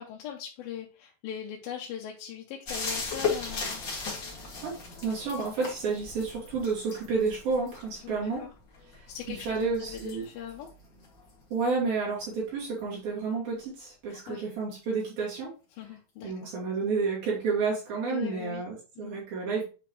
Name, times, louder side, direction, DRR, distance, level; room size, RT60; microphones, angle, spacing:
voice 1, 0.0-3.8 8.0-8.5 9.1-10.7 14.1-14.4 15.7-16.5 18.1-18.6 19.0-19.1, left 9 dB, 75° left, -1 dB, 2.6 m, -40 dB
sound 1, 2.6-12.0 14.1-14.2, left 5 dB, 35° left, 2.4 m, -37 dB
voice 2, 5.0-8.4 8.9-10.2 11.5-15.5 16.2-19.6, right 4 dB, 70° right, -6 dB, 4.3 m, -30 dB
8.6 x 4.9 x 3.1 m, 0.33 s
omnidirectional pair, 4.3 m